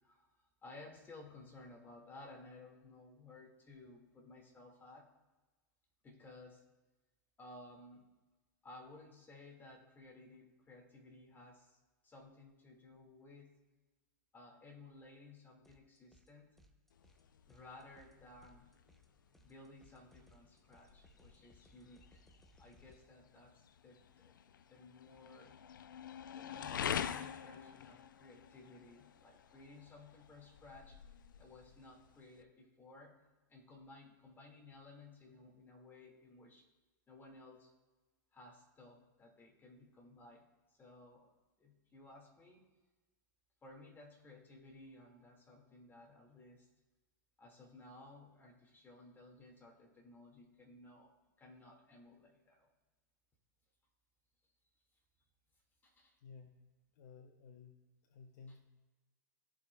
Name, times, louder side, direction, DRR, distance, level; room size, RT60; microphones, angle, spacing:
voice 1, 0.0-5.1 6.0-6.7 7.4-8.1 8.6-13.6 14.3-16.6 17.4-18.7 19.4-22.2 22.6-25.6 26.3-31.0 31.4-33.2 33.5-36.7 37.1-37.7 38.3-41.3 41.6-42.7 43.6-46.7 47.4-52.7 55.8-56.2, left 2 dB, 20° left, 0 dB, 1.8 m, -57 dB
sound 1, 15.6-16.3 16.6-23.0, equal, ahead, 0.7 m, -68 dB
sound 2, 16.9-32.4, left 8 dB, 85° left, 0.4 m, -47 dB
voice 2, 56.2-56.6 56.9-58.6, left 5 dB, 60° left, 4 dB, 0.7 m, -56 dB
14.5 x 4.9 x 2.2 m, 1.2 s
hypercardioid pair, 105°, 11 cm